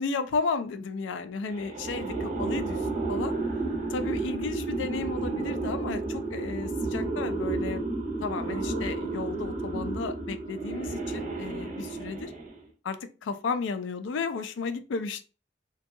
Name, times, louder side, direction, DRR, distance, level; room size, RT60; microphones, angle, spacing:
voice 1, 0.0-3.3 3.9-7.8 8.2-12.3 12.8-15.2, left 4 dB, 80° left, 0.3 m, -33 dB
sound 1, 1.5-12.7, right 3 dB, 40° right, 0.6 m, -32 dB
2.6 x 2.2 x 2.5 m
head